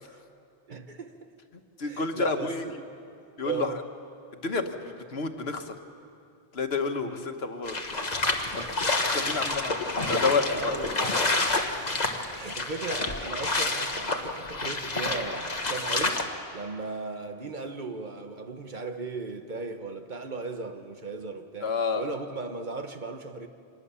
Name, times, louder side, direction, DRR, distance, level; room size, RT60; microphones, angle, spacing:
voice 1, 0.7-1.2 1.8-2.8 3.4-3.8 7.0-7.2 10.5-11.3 11.8-11.9 12.3-16.2 16.5-23.5, right 4 dB, 50° right, 1.4 m, -37 dB
voice 2, 1.8-2.6 3.4-3.8 4.3-5.7 6.5-8.0 8.5-11.3 21.6-22.1, left 4 dB, 85° left, 1.5 m, -30 dB
sound 1, 7.7-16.3, left 2 dB, 45° left, 1.5 m, -29 dB
25.0 x 20.0 x 7.0 m
omnidirectional pair, 1.0 m